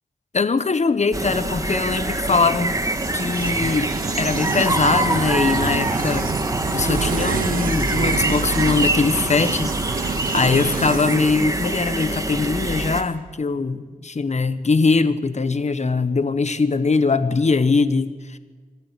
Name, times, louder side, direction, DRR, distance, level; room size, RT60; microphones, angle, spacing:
voice 1, 0.3-2.8 3.1-3.9 4.2-6.3 6.7-9.7 10.0-18.4, left 4 dB, 50° left, 12 dB, 1.4 m, -21 dB
sound 1, 1.1-13.0, right 1 dB, 25° right, 2.0 m, -25 dB
sound 2, 2.5-12.1, right 7 dB, 75° right, 0.7 m, -29 dB
26.0 x 12.5 x 8.4 m, 1.5 s
cardioid pair, 50°, 14 cm